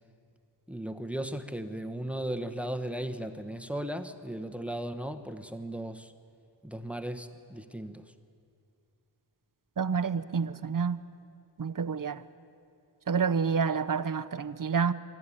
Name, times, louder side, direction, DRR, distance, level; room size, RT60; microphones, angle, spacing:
voice 1, 0.7-6.1 6.6-8.1, right 1 dB, 5° right, 9 dB, 1.0 m, -36 dB
voice 2, 9.8-11.0 11.6-12.2 13.1-14.9, right 6 dB, 45° right, 12 dB, 0.8 m, -28 dB
26.5 x 13.5 x 9.9 m, 2.5 s
wide cardioid pair, 90°, 45 cm